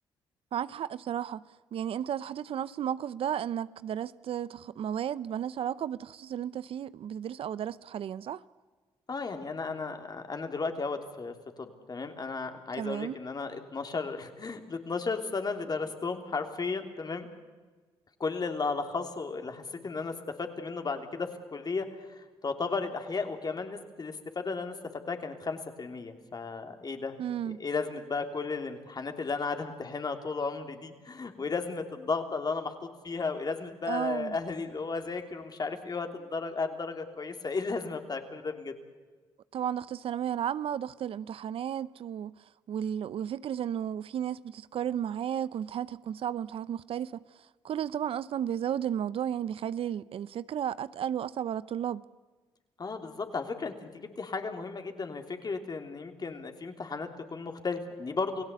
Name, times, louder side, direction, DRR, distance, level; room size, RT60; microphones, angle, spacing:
voice 1, 0.5-1.4 1.7-8.4 12.7-13.2 27.2-27.6 33.9-34.4 39.5-42.3 42.7-47.2 47.6-52.0, right 9 dB, 65° right, 0.6 m, -33 dB
voice 2, 9.1-17.3 18.2-24.7 25.1-38.7 52.8-58.4, left 4 dB, 40° left, 3.2 m, -34 dB
29.0 x 17.0 x 8.3 m
supercardioid pair, 65°, 10 cm